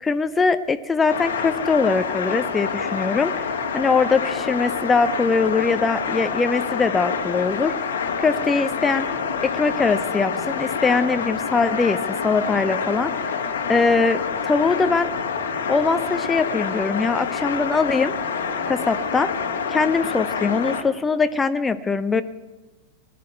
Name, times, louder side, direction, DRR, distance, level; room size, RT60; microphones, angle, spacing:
voice 1, 0.0-3.5 3.7-7.7 8.2-9.1 9.4-15.1 15.7-18.1 18.7-19.3 19.7-22.2, left 4 dB, 15° left, 11 dB, 0.6 m, -22 dB
sound 1, 1.1-20.8, left 6 dB, 65° left, 1.4 m, -27 dB
20.0 x 11.0 x 4.7 m, 1.1 s
figure-of-eight pair, 90°, 0 cm